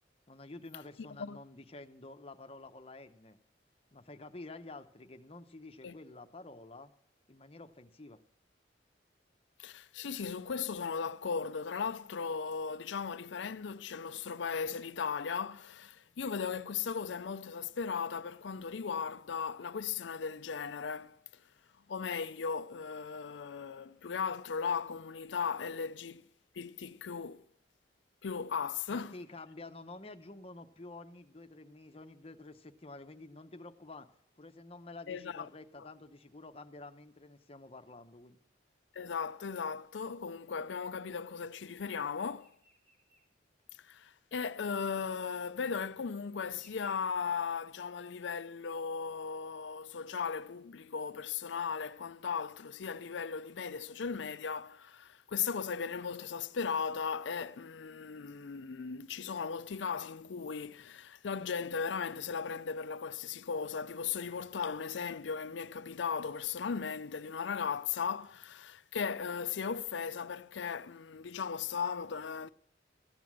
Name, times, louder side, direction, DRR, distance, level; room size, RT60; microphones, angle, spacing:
voice 1, 0.3-3.4 3.9-6.9 7.3-8.2 28.9-34.1 34.4-38.4, left 2 dB, 30° left, 0.9 m, -49 dB
voice 2, 1.0-1.4 5.8-5.9 9.6-21.2 21.9-26.2 26.5-27.4 28.2-29.1 35.1-35.5 35.8-35.9 38.9-42.6 43.8-72.5, left 6 dB, 80° left, 0.5 m, -37 dB
sound 1, 42.2-43.3 43.6-43.7 44.5-44.6 45.6-45.7 46.5-47.0, right 1 dB, 35° right, 5.7 m, -63 dB
15.0 x 9.4 x 6.2 m
head